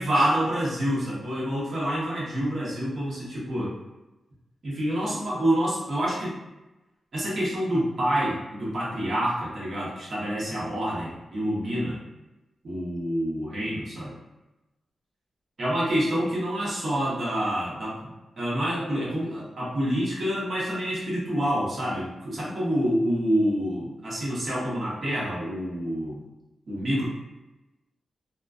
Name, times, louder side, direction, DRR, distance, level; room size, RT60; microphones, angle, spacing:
voice 1, 0.0-3.7 4.6-6.3 7.1-12.0 12.6-14.2 15.6-26.2 26.7-27.1, equal, 50° right, -7 dB, 0.8 m, -27 dB
2.3 x 2.3 x 2.3 m, 1.0 s
wide cardioid pair, 130°, 0 cm